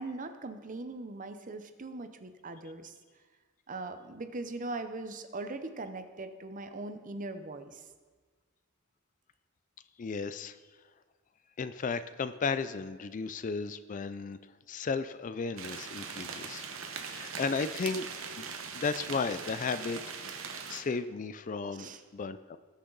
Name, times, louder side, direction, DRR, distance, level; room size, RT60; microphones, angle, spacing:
voice 1, 0.0-2.9 3.7-7.8 21.7-22.0, right 2 dB, 40° right, 9 dB, 0.7 m, -40 dB
voice 2, 10.0-10.6 11.6-14.4 14.7-16.6 17.0-18.1 18.4-18.5 18.8-20.0 20.7-21.9 22.1-22.6, left 4 dB, 40° left, 13 dB, 0.4 m, -34 dB
sound 1, 15.6-20.8, right 6 dB, 75° right, 1.1 m, -41 dB
19.0 x 6.4 x 4.0 m, 1.4 s
head